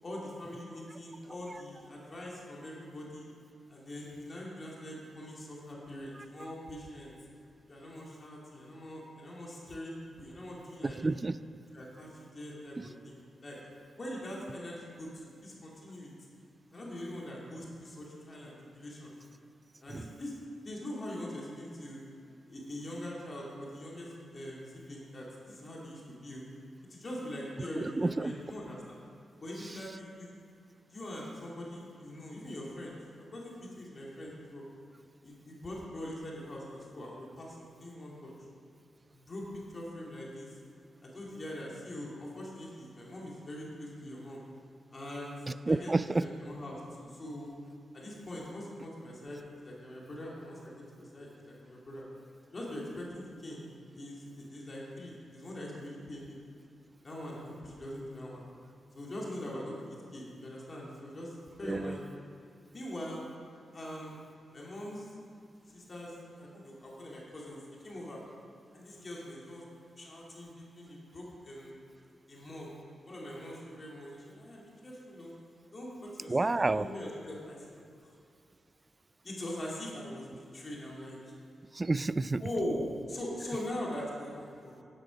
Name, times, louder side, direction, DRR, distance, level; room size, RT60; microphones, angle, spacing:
voice 1, 0.0-3.3 3.7-7.1 7.7-11.0 11.7-13.7 13.9-16.1 16.7-19.2 19.8-20.4 20.6-22.0 22.5-26.5 26.9-29.0 29.4-30.3 30.9-34.7 35.2-38.3 39.1-40.6 41.0-44.4 44.9-45.3 45.7-47.5 47.9-52.0 52.5-53.6 53.9-56.5 57.0-58.4 58.9-62.0 62.7-63.2 63.7-64.1 64.5-65.1 65.7-68.2 68.7-69.6 70.0-71.8 72.3-72.7 73.1-75.3 75.7-78.1 79.2-81.2 82.4-84.8, left 1 dB, 40° left, -4 dB, 2.5 m, -42 dB
voice 2, 10.8-11.4 12.8-12.9 19.9-20.0 27.8-28.3 45.5-46.3 61.6-62.0 76.3-76.9 81.7-82.4, right 3 dB, 30° right, 15 dB, 0.3 m, -30 dB
11.0 x 9.1 x 5.2 m, 2.5 s
cardioid pair, 65°, 0 cm